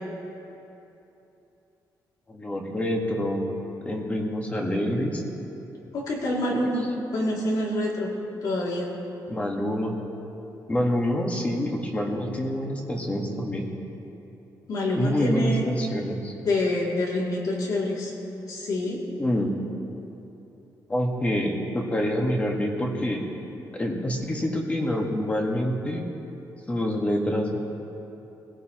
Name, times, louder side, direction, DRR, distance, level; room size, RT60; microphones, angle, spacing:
voice 1, 2.3-3.5 3.8-5.2 6.5-6.7 9.3-9.9 10.7-13.7 14.9-16.3 19.2-19.6 20.9-23.2 23.7-26.0 26.7-27.6, equal, 20° left, 0 dB, 1.6 m, -26 dB
voice 2, 5.9-6.9 7.1-8.1 8.4-8.9 14.7-15.6 16.5-18.1 18.5-19.0, left 1 dB, 60° left, -3 dB, 2.6 m, -26 dB
21.5 x 16.0 x 3.0 m, 2.9 s
wide cardioid pair, 160°, 7 cm